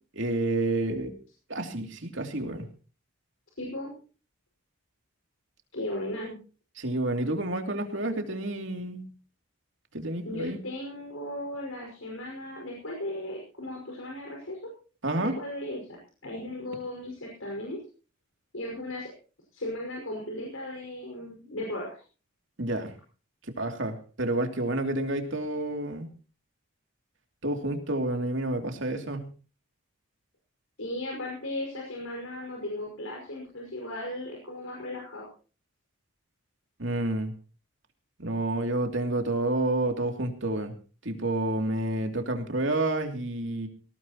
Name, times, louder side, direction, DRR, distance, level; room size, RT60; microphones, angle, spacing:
voice 1, 0.2-1.1 1.5-2.6 6.8-9.1 9.9-10.6 15.0-15.3 22.6-22.9 23.5-26.1 27.4-29.3 36.8-37.3 38.2-40.7 41.0-43.7, right 2 dB, 60° right, 4 dB, 2.8 m, -29 dB
voice 2, 3.6-3.9 5.7-6.4 10.2-14.6 15.2-17.8 18.5-19.1 19.5-22.0 30.8-35.3, left 1 dB, 80° left, -1 dB, 5.6 m, -36 dB
19.0 x 18.0 x 3.0 m, 0.37 s
head